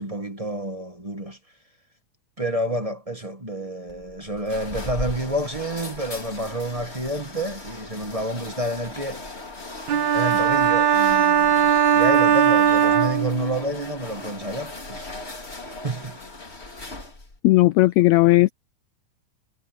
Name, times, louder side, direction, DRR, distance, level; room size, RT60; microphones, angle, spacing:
voice 1, 0.0-1.4 2.4-9.2 10.1-16.2, right 1 dB, 25° right, 0.8 m, -29 dB
sound 1, 3.9-17.4, left 2 dB, 20° left, 2.9 m, -38 dB
sound 2, 9.9-13.8, right 8 dB, 65° right, 2.6 m, -19 dB
voice 2, 17.4-18.5, left 19 dB, 85° left, 1.6 m, -16 dB
omnidirectional pair, 3.6 m